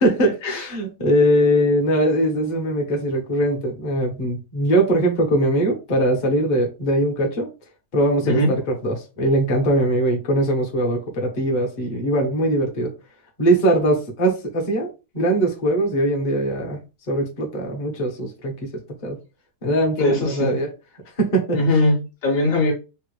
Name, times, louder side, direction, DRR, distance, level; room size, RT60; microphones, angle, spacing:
voice 1, 0.0-7.5 7.9-12.9 13.4-16.8 17.1-18.7 19.0-19.2 19.6-20.7 21.2-21.6, right 1 dB, 45° left, 0 dB, 0.6 m, -21 dB
voice 2, 20.0-20.6 21.5-22.7, left 1 dB, 60° left, 1 dB, 1.0 m, -20 dB
3.4 x 2.1 x 3.0 m, 0.29 s
omnidirectional pair, 2.0 m